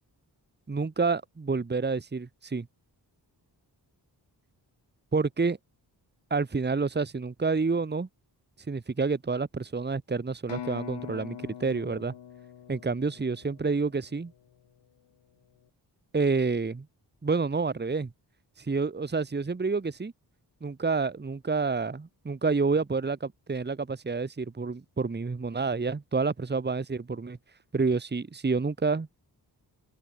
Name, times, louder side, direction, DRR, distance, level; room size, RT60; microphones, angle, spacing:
voice 1, 0.7-2.7 5.1-5.6 6.3-8.1 8.7-12.1 12.7-14.3 16.1-16.9 17.2-18.1 18.6-20.1 20.6-27.4 27.7-29.1, right 4 dB, 25° right, 1.3 m, -28 dB
sound 1, 10.5-14.3, left 9 dB, 85° left, 1.1 m, -43 dB
open air
wide cardioid pair, 150°, 42 cm